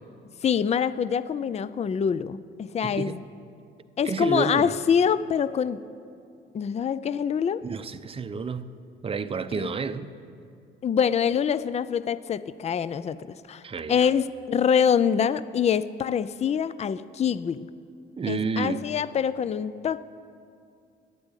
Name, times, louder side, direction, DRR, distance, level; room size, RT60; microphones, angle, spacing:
voice 1, 0.4-3.2 4.0-5.8 6.5-7.6 9.6-9.7 10.8-13.6 13.9-17.7 18.3-20.0, left 7 dB, 35° left, 16 dB, 0.4 m, -25 dB
voice 2, 2.8-3.1 4.0-4.7 7.6-8.7 9.0-10.1 13.6-14.1 18.2-18.8, right 5 dB, 30° right, 10 dB, 0.6 m, -30 dB
12.0 x 9.1 x 9.7 m, 2.4 s
cardioid pair, 90°, 20 cm